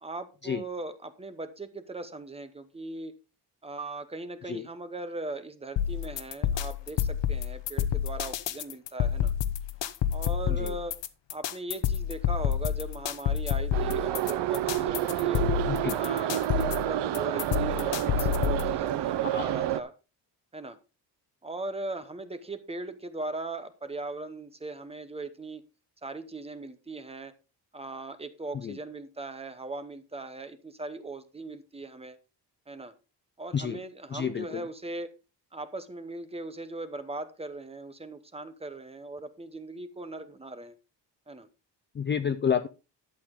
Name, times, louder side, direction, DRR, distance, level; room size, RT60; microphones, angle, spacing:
voice 1, 0.0-3.1 3.6-9.3 10.1-11.0 11.3-15.5 15.9-19.9 20.5-20.8 21.4-25.6 26.0-27.3 27.7-32.2 32.7-32.9 33.4-35.1 35.5-40.8 41.3-41.5, right 2 dB, 15° right, 0.9 m, -39 dB
sound 1, 5.8-18.7, left 10 dB, 80° left, 1.0 m, -29 dB
Subway metro underground, 13.7-19.8, right 12 dB, 70° right, 0.8 m, -29 dB
voice 2, 15.7-16.0 19.2-19.5 28.6-28.8 33.5-33.8 34.1-34.6 41.9-42.7, left 7 dB, 25° left, 0.4 m, -30 dB
11.5 x 8.1 x 3.7 m
cardioid pair, 180°, 42 cm